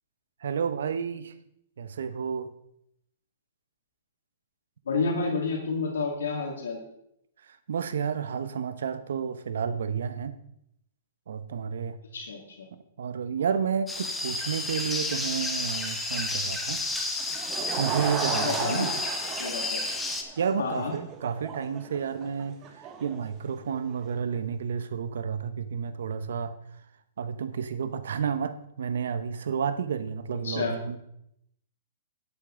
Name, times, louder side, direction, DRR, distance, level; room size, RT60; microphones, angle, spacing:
voice 1, 0.4-1.3 1.8-2.5 7.7-10.3 11.3-12.0 13.0-16.8 17.8-18.9 20.4-22.6 23.0-26.6 27.2-31.0, right 7 dB, 80° right, 12 dB, 0.9 m, -31 dB
voice 2, 4.9-6.8 12.1-12.7 18.3-18.9 19.4-19.8 20.6-20.9 30.3-30.8, left 4 dB, 90° left, 1 dB, 2.0 m, -30 dB
sound 1, 13.9-20.2, left 2 dB, 5° left, 1.1 m, -31 dB
Laughter / Crowd, 17.2-24.1, right 7 dB, 30° right, 1.0 m, -36 dB
11.5 x 8.4 x 3.8 m, 0.77 s
hypercardioid pair, 140°, 0 cm